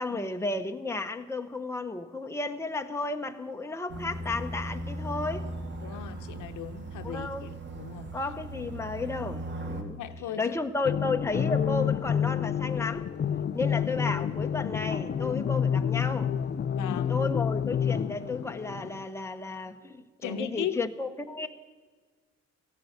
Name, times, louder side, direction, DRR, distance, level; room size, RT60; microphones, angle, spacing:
voice 1, 0.0-5.5 7.0-7.5 8.1-10.0 10.4-13.1 13.5-16.3 17.1-21.5, left 3 dB, 10° left, 6 dB, 0.9 m, -33 dB
sound 1, 3.9-9.8, right 1 dB, 35° right, 2.0 m, -38 dB
voice 2, 5.8-8.1 9.8-10.6 16.7-17.2 20.2-20.8, left 9 dB, 80° left, 9 dB, 0.9 m, -37 dB
sound 2, 10.8-19.0, left 8 dB, 35° left, 0.5 m, -29 dB
15.5 x 11.0 x 8.0 m, 1.4 s
cardioid pair, 90°, 30 cm